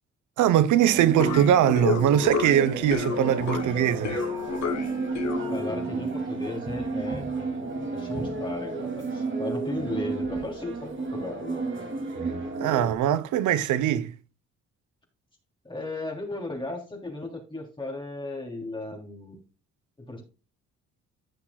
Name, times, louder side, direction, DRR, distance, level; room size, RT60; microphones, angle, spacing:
voice 1, 0.4-4.2 12.5-14.2, right 10 dB, 80° right, 0.9 m, -22 dB
sound 1, 0.8-13.0, right 3 dB, 40° right, 2.7 m, -32 dB
sound 2, 1.2-6.0, left 6 dB, 65° left, 2.9 m, -31 dB
voice 2, 5.5-11.6 15.6-19.4 20.0-20.2, left 2 dB, 15° left, 3.2 m, -36 dB
15.0 x 5.8 x 2.3 m
cardioid pair, 90°, 30 cm